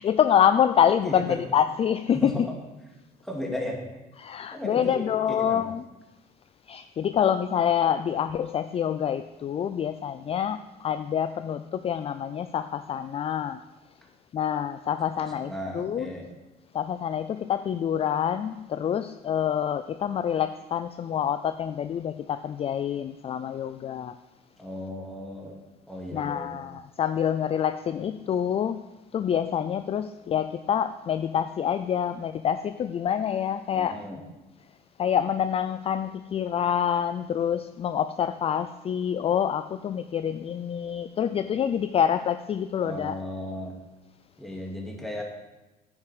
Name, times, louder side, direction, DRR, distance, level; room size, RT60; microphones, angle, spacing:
voice 1, 0.0-2.5 4.2-5.8 6.7-13.6 14.3-16.1 16.7-24.1 26.1-28.8 29.1-34.0 35.0-43.1, left 9 dB, 35° left, 11 dB, 0.4 m, -26 dB
voice 2, 1.0-1.4 2.1-2.4 3.2-3.8 4.5-5.6 15.2-16.3 24.6-25.6 25.9-26.6 33.7-34.2 42.8-43.8 44.4-45.2, left 1 dB, ahead, -2 dB, 2.4 m, -35 dB
9.7 x 7.1 x 4.9 m, 1.1 s
cardioid pair, 110°, 17 cm